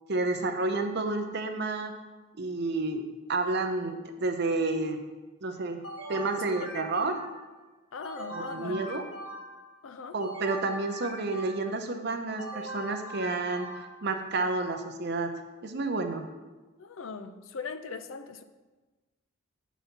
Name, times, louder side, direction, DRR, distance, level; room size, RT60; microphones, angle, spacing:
voice 1, 0.1-1.9 2.4-3.0 3.3-5.0 5.4-5.8 6.1-7.2 8.3-9.0 10.1-13.7 14.0-15.3 15.6-16.3, right 3 dB, 50° right, 6 dB, 0.7 m, -30 dB
sound 1, 5.8-7.5 8.0-9.7 10.2-11.8 12.4-14.1, right 1 dB, 90° left, 2.1 m, -41 dB
voice 2, 6.4-6.7 7.9-8.8 9.8-10.2 16.8-18.4, left 5 dB, 70° left, 10 dB, 0.5 m, -40 dB
8.3 x 4.1 x 5.9 m, 1.2 s
head